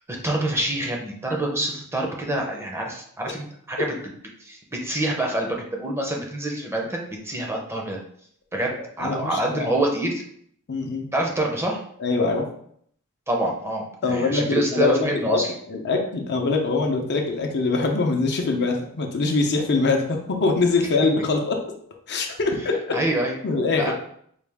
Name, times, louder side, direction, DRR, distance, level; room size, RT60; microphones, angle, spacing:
voice 1, 0.1-3.9 4.4-8.0 8.5-10.2 11.1-11.8 13.3-15.5 22.9-23.4 23.8-23.9, right 1 dB, 10° right, 0 dB, 0.6 m, -26 dB
voice 2, 9.0-9.7 10.7-11.1 12.0-12.5 14.0-21.6 22.1-23.0 23.4-23.9, left 3 dB, 50° left, 2 dB, 0.6 m, -23 dB
4.8 x 2.4 x 3.4 m, 0.65 s
head